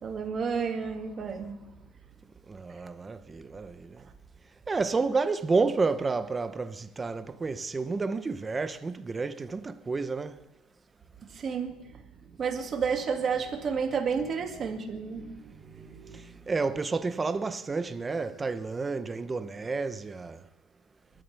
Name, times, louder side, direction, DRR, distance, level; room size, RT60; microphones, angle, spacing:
voice 1, 0.0-1.6 11.2-12.0 12.3-16.3, right 6 dB, 30° right, 2.2 m, -31 dB
voice 2, 2.5-4.1 4.7-10.4 15.7-20.5, right 4 dB, 15° right, 0.7 m, -30 dB
29.0 x 13.0 x 3.4 m
cardioid pair, 155°, 0 cm